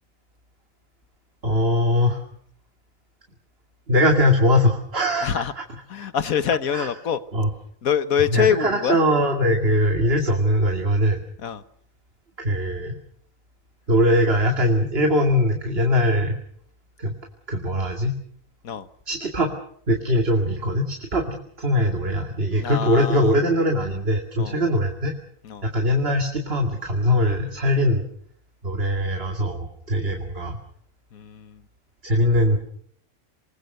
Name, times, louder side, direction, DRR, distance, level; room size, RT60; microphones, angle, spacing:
voice 1, 1.4-2.2 3.9-5.6 6.0-6.1 6.7-6.9 7.3-7.5 8.3-11.2 12.4-13.0 13.9-16.4 17.0-17.1 17.5-18.2 19.1-19.5 19.9-25.1 25.6-28.0 28.6-30.6 32.0-32.6, equal, 45° right, 3 dB, 2.6 m, -21 dB
voice 2, 5.2-5.5 5.9-7.2 7.8-9.0 11.4-11.6 18.6-18.9 22.5-23.3 24.4-24.6 25.4-25.7 31.1-31.6, left 8 dB, 80° left, 13 dB, 1.6 m, -24 dB
26.5 x 20.5 x 6.7 m, 0.63 s
omnidirectional pair, 1.5 m